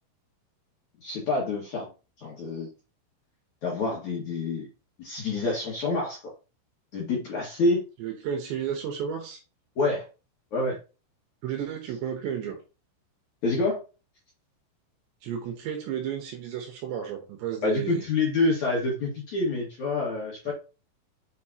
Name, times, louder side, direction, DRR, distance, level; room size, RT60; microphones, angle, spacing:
voice 1, 1.0-1.9 2.2-2.7 3.6-4.7 5.0-6.2 6.9-7.8 9.8-10.0 10.5-10.8 13.4-13.8 17.6-20.5, left 3 dB, 50° left, -4 dB, 2.4 m, -27 dB
voice 2, 8.0-9.4 11.4-12.6 15.2-18.0 20.5-20.6, right 8 dB, 70° right, 4 dB, 3.0 m, -32 dB
7.3 x 6.8 x 2.9 m, 0.31 s
omnidirectional pair, 5.9 m